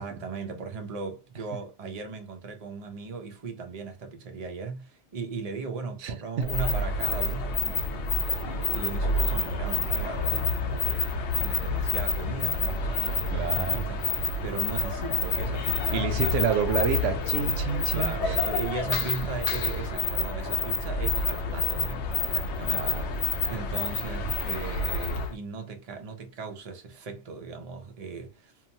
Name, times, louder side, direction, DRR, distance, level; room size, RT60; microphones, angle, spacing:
voice 1, 0.0-16.4 17.9-28.5, right 4 dB, 35° right, 0.7 m, -38 dB
voice 2, 6.0-6.5 13.3-13.8 15.9-18.4 22.7-23.1 23.7-23.8, right 7 dB, 85° right, 0.9 m, -29 dB
sound 1, 6.4-25.3, left 3 dB, 70° left, 0.8 m, -28 dB
2.8 x 2.1 x 2.6 m
omnidirectional pair, 1.2 m